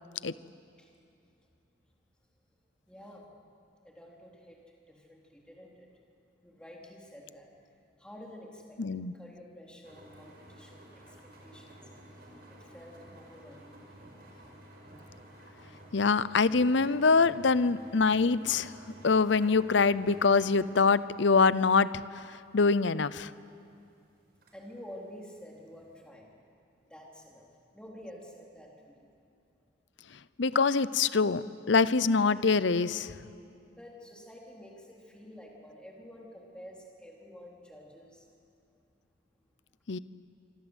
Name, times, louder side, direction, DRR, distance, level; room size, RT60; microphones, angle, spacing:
voice 1, 2.9-3.3 3.8-5.9 6.4-7.5 8.0-13.9 14.2-14.5 24.5-26.4 26.9-29.1 33.7-38.3 39.4-39.5, equal, 5° left, -2 dB, 3.7 m, -50 dB
voice 2, 8.8-9.1 15.9-18.7 19.0-22.0 22.5-23.3 30.4-33.1 39.9-40.0, left 4 dB, 70° left, 16 dB, 0.7 m, -24 dB
sound 1, 9.8-26.0, right 1 dB, 50° right, 5.7 m, -53 dB
26.5 x 24.5 x 8.2 m, 2.5 s
head